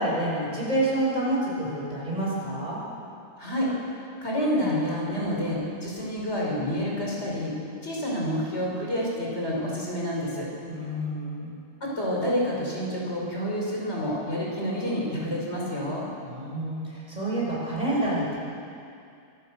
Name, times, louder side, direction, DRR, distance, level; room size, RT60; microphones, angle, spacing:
voice 1, 0.0-2.9 10.7-11.5 16.3-18.4, right 1 dB, 35° right, -6 dB, 6.8 m, -28 dB
voice 2, 3.4-3.7 4.2-7.5 7.8-10.5 11.8-16.1, equal, 65° left, -4 dB, 5.6 m, -28 dB
24.5 x 18.0 x 6.8 m, 2.5 s
omnidirectional pair, 1.2 m